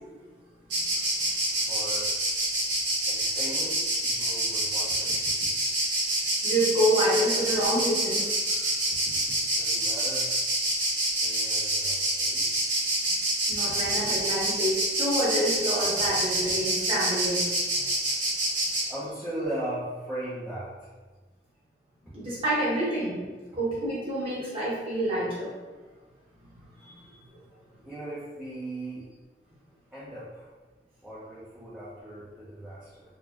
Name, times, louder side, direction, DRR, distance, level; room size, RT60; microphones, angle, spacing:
Insect, 0.7-18.8, right 1 dB, 90° right, 1.3 m, -27 dB
voice 1, 1.5-2.1 3.1-5.2 9.5-10.4 11.2-12.5 18.9-20.9 27.8-29.1 29.9-30.5 31.0-33.0, right 1 dB, 5° right, -11 dB, 0.7 m, -38 dB
voice 2, 6.4-8.6 13.5-17.5 22.1-23.2 23.5-25.5 26.8-26.9 27.3-27.4, right 1 dB, 30° right, -9 dB, 1.4 m, -27 dB
4.2 x 2.3 x 2.9 m, 1.3 s
head